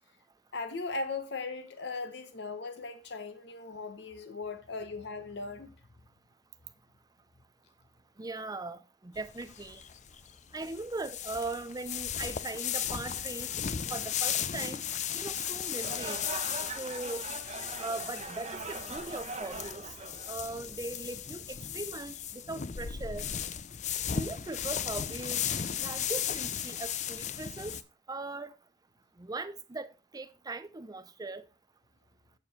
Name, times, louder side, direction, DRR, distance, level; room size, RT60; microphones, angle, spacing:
voice 1, 0.5-5.7, left 3 dB, 65° left, 0.9 m, -38 dB
voice 2, 8.2-9.8 10.5-13.5 13.9-14.8 15.1-16.2 16.8-17.3 17.8-19.9 20.3-23.3 24.1-25.4 25.7-27.8 28.1-28.5 29.2-29.9 30.1-31.4, right 3 dB, 20° right, 0.6 m, -39 dB
sound 1, 9.1-27.8, left 9 dB, 40° left, 0.5 m, -36 dB
sound 2, 15.7-20.9, right 3 dB, 35° right, 1.1 m, -42 dB
9.0 x 6.9 x 4.1 m
head